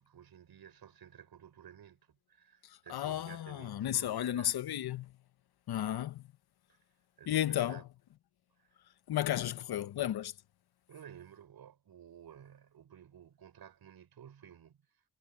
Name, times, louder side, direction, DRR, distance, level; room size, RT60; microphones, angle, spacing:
voice 1, 0.0-4.6 6.7-6.8 7.2-7.8 8.6-8.7 10.9-14.8, right 9 dB, 75° right, 6.0 m, -54 dB
voice 2, 2.9-5.1 5.7-6.2 7.3-7.8 9.1-10.3, left 12 dB, 80° left, 1.1 m, -33 dB
supercardioid pair, 40°, 37 cm